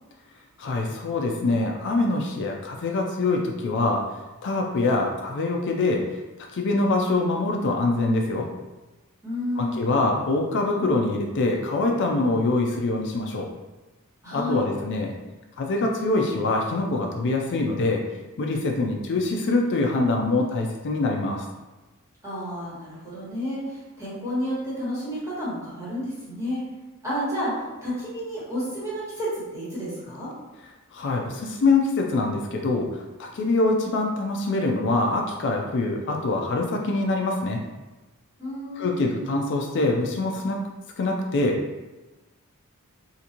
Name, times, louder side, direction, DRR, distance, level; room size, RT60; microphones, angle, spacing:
voice 1, 0.6-4.0 4.4-6.0 6.5-8.5 9.6-13.5 14.3-15.1 15.6-18.0 18.4-21.5 30.9-37.6 38.8-40.6 41.0-41.6, left 2 dB, 55° left, 1 dB, 0.4 m, -24 dB
voice 2, 9.2-10.0 14.2-14.6 22.2-26.6 27.0-30.3 38.4-39.2, equal, 15° right, -10 dB, 1.5 m, -31 dB
3.8 x 2.5 x 2.8 m, 1.1 s
head